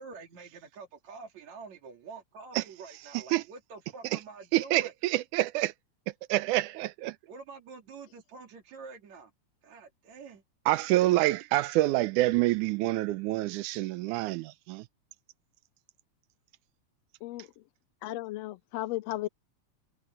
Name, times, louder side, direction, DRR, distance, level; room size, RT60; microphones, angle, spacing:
voice 1, 0.0-4.9 7.3-9.3 9.6-10.4, right 4 dB, 65° right, 3.9 m, -47 dB
voice 2, 4.5-5.7 6.3-7.2 10.7-14.9, right 17 dB, 90° right, 2.1 m, -27 dB
voice 3, 17.2-17.6 18.0-19.3, left 16 dB, 75° left, 1.6 m, -35 dB
omnidirectional pair, 3.4 m